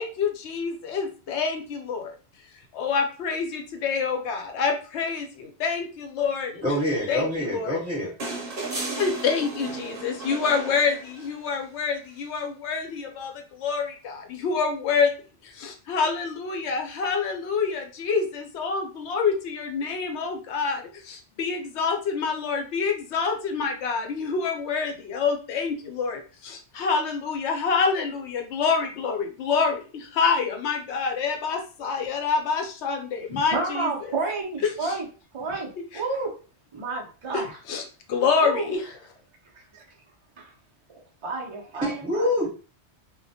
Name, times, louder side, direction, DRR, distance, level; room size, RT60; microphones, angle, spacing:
voice 1, 0.0-2.2 2.7-6.6 7.1-7.8 9.0-15.1 15.4-34.1 34.6-35.0 35.9-36.0 37.3-37.8 38.1-38.9, left 5 dB, 75° left, 0.8 m, -27 dB
voice 2, 6.6-8.2 41.8-42.5, left 1 dB, 10° right, 0.9 m, -26 dB
sound 1, 8.2-11.5 13.1-13.2, right 3 dB, 55° right, 0.8 m, -34 dB
voice 3, 33.3-35.1 35.3-36.3 36.7-37.6 38.4-38.7 39.7-39.8 40.4-40.5 41.2-42.3, right 3 dB, 40° right, 0.4 m, -30 dB
2.2 x 2.1 x 2.7 m
omnidirectional pair, 1.2 m